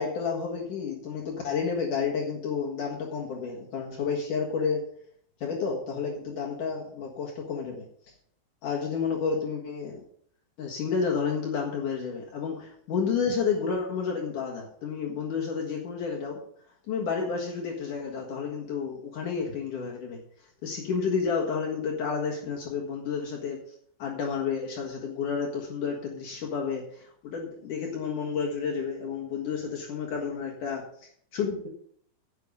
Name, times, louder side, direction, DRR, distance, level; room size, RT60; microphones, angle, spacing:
voice 1, 0.0-4.8 5.4-7.8 8.6-10.0 10.6-16.4 16.9-20.2 20.6-23.7 24.0-31.7, left 5 dB, 65° left, -1 dB, 2.1 m, -31 dB
10.5 x 8.6 x 5.3 m, 0.62 s
omnidirectional pair, 5.9 m